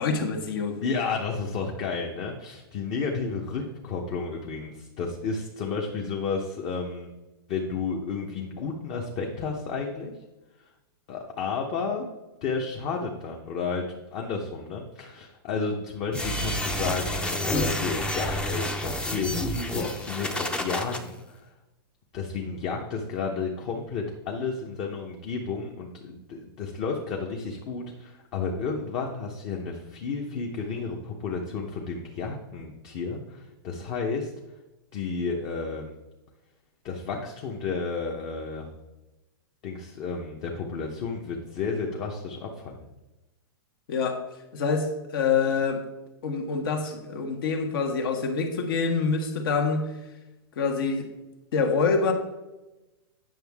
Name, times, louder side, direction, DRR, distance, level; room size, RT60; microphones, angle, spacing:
voice 1, 0.0-0.8 43.9-44.2 44.5-45.8 46.2-49.9 50.6-51.1 51.5-52.1, left 5 dB, 65° left, 5 dB, 1.4 m, -26 dB
voice 2, 0.8-7.1 7.5-10.1 11.1-12.1 12.4-21.5 22.1-34.3 34.9-35.9 36.8-38.7 39.6-42.9, left 4 dB, 35° left, 1 dB, 1.0 m, -32 dB
sound 1, 16.1-21.0, left 1 dB, 5° left, 0.6 m, -29 dB
9.1 x 6.4 x 3.6 m, 1.0 s
hypercardioid pair, 140°, 13 cm